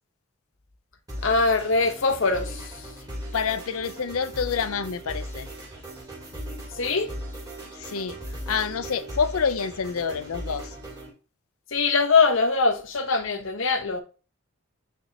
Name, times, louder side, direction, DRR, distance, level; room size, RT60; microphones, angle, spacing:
sound 1, 1.1-11.1, right 1 dB, 15° right, 2.3 m, -38 dB
voice 1, 1.2-2.7 6.8-7.1 11.7-14.0, left 4 dB, 60° left, 0.9 m, -22 dB
voice 2, 3.3-5.5 7.8-8.2 8.5-10.7, left 6 dB, 80° left, 0.5 m, -27 dB
8.9 x 4.2 x 2.8 m
head